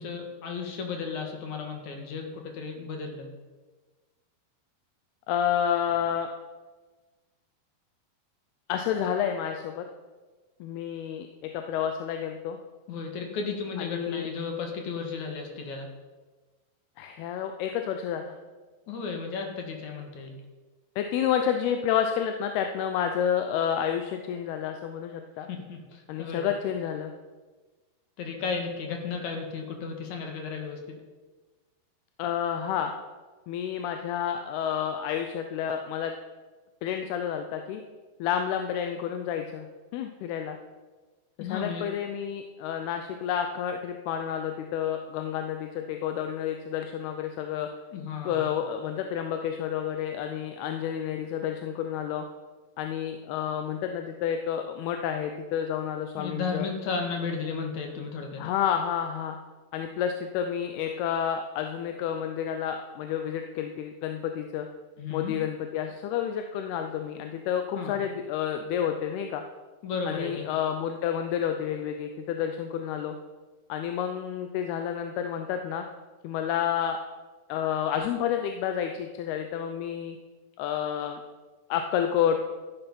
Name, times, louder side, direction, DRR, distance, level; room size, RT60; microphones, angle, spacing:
voice 1, 0.0-3.3 12.9-15.9 18.9-20.4 25.5-26.5 28.2-31.0 41.4-41.8 47.9-48.4 56.2-58.4 65.0-65.4 67.8-68.0 69.8-70.5, left 5 dB, 55° left, 3 dB, 2.7 m, -34 dB
voice 2, 5.3-6.3 8.7-9.8 10.6-12.6 13.8-14.3 17.0-18.4 21.0-25.5 26.1-27.1 32.2-32.9 33.5-36.1 36.8-37.8 38.2-39.7 39.9-40.6 41.4-47.7 48.2-52.3 52.8-56.7 58.4-59.4 59.7-64.7 65.1-69.4 70.1-73.2 73.7-75.9 76.2-77.0 77.5-80.2 80.6-81.2 81.7-82.4, left 9 dB, 80° left, 6 dB, 2.7 m, -30 dB
14.0 x 10.0 x 5.4 m, 1.3 s
omnidirectional pair, 4.5 m